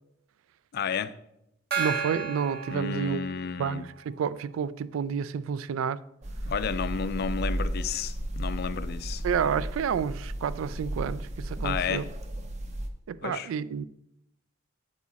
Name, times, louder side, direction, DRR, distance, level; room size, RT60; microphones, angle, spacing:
voice 1, 0.7-1.1 2.7-3.9 6.5-9.2 11.6-12.0 13.2-13.5, left 6 dB, 50° left, 0.4 m, -32 dB
Gong, 1.7-3.7, right 6 dB, 50° right, 1.1 m, -33 dB
voice 2, 1.8-3.2 3.6-6.0 9.2-12.0 13.1-13.8, right 7 dB, 85° right, 0.3 m, -30 dB
sound 1, 6.2-12.9, right 1 dB, 35° right, 0.6 m, -34 dB
8.0 x 4.8 x 4.1 m
head